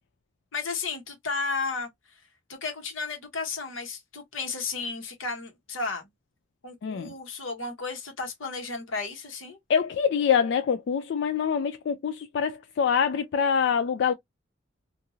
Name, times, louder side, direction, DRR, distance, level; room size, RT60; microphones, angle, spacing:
voice 1, 0.5-2.2 2.5-6.1 6.6-9.6, left 4 dB, 85° left, 1.1 m, -33 dB
voice 2, 6.8-7.1 9.7-14.1, left 7 dB, 60° left, 0.3 m, -25 dB
2.7 x 2.5 x 2.6 m
head